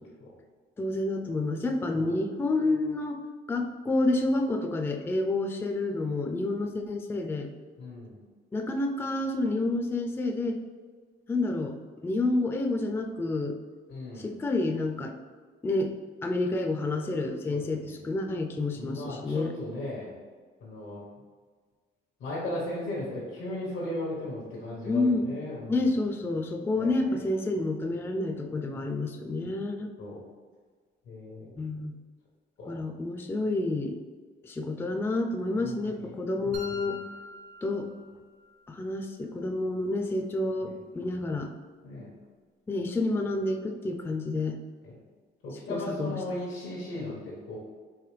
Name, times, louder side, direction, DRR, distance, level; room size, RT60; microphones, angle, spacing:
voice 1, 0.8-3.2 3.5-7.5 8.5-10.6 11.3-11.8 12.0-13.6 14.2-15.1 15.6-15.9 16.2-19.5 24.9-25.3 25.7-29.9 31.6-32.0 32.7-34.0 34.4-37.0 37.6-37.9 38.7-41.5 42.7-44.6 45.7-46.2 47.0-47.1, left 2 dB, 10° left, 4 dB, 0.3 m, -29 dB
voice 2, 7.8-8.2 13.9-14.3 17.5-18.0 18.7-20.1 20.6-21.0 22.2-25.9 26.7-27.1 30.0-30.2 31.1-31.6 32.6-32.8 35.6-36.1 36.4-36.8 40.6-40.8 41.8-42.1 44.8-45.0 45.4-47.6, left 1 dB, 85° left, -6 dB, 1.1 m, -37 dB
sound 1, 36.5-38.5, left 2 dB, 90° right, 1.1 m, -43 dB
4.7 x 3.3 x 3.1 m, 1.5 s
cardioid pair, 90°, 20 cm